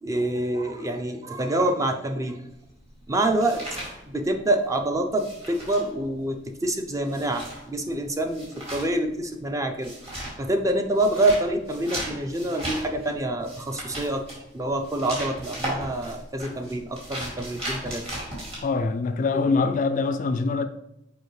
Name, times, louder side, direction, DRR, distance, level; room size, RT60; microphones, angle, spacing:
voice 1, 0.0-2.4 3.1-3.6 4.1-9.9 10.4-14.2 14.5-18.0 19.3-19.7, right 1 dB, 20° right, 0.5 m, -26 dB
sound 1, 2.5-4.7 4.9-18.6, right 1 dB, 35° right, 2.4 m, -36 dB
voice 2, 18.6-20.7, left 4 dB, 45° left, 0.3 m, -24 dB
6.8 x 4.9 x 3.2 m
head